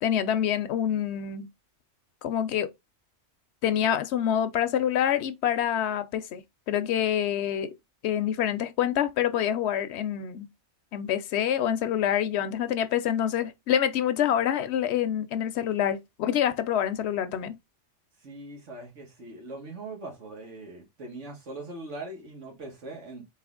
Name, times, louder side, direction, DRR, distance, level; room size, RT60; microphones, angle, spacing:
voice 1, 0.0-1.5 2.2-2.7 3.6-6.4 6.7-7.7 8.0-10.5 10.9-17.6, left 10 dB, 70° left, 0.8 m, -26 dB
voice 2, 18.2-23.2, right 2 dB, 90° right, 1.9 m, -41 dB
4.1 x 2.7 x 3.7 m
omnidirectional pair, 1.2 m